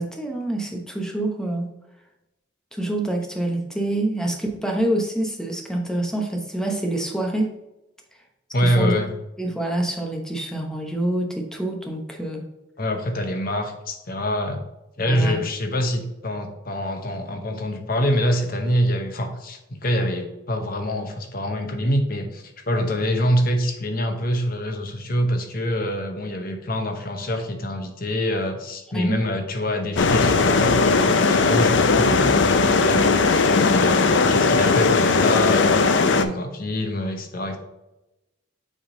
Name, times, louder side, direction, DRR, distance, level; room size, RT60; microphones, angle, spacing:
voice 1, 0.0-1.7 2.7-7.6 8.6-8.9 9.4-12.5 15.1-15.4 28.9-29.2, right 1 dB, 5° left, 1 dB, 0.9 m, -26 dB
voice 2, 8.5-9.1 12.8-14.6 15.0-33.1 33.6-37.6, equal, 45° left, 5 dB, 1.0 m, -25 dB
sound 1, 30.0-36.2, left 4 dB, 65° left, 0.5 m, -18 dB
7.3 x 3.7 x 3.8 m, 0.97 s
head